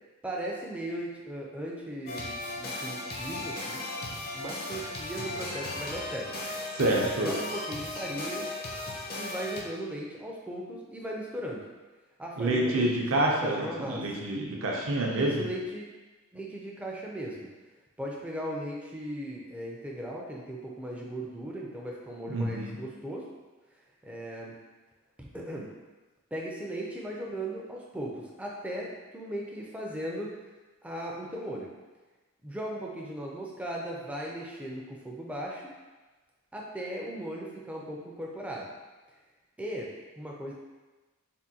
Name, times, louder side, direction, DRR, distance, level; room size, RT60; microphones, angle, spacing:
voice 1, 0.2-3.8 4.3-6.3 7.2-8.5 9.2-11.6 12.2-14.3 15.1-15.9 16.3-17.5 18.0-23.3 24.0-24.6 25.2-25.7 26.3-30.3 30.8-31.7 32.4-35.7 36.5-38.7 39.6-40.5, right 1 dB, 5° right, -3 dB, 0.4 m, -37 dB
sound 1, 2.1-9.6, left 2 dB, 45° left, 0.6 m, -36 dB
voice 2, 6.8-7.3 12.4-15.5 22.3-22.7, right 1 dB, 65° right, -1 dB, 0.6 m, -27 dB
3.5 x 2.2 x 2.7 m, 1.2 s
head